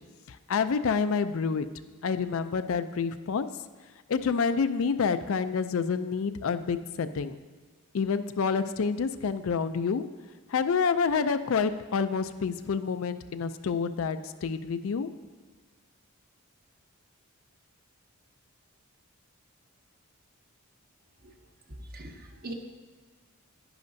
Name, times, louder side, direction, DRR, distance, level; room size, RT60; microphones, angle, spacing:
voice 1, 0.3-1.7 2.0-3.5 4.1-7.4 7.9-10.0 10.5-15.1, left 5 dB, 65° left, 11 dB, 0.4 m, -28 dB
voice 2, 21.7-22.5, right 2 dB, 45° right, 2 dB, 1.0 m, -42 dB
10.5 x 10.5 x 2.6 m, 1.4 s
head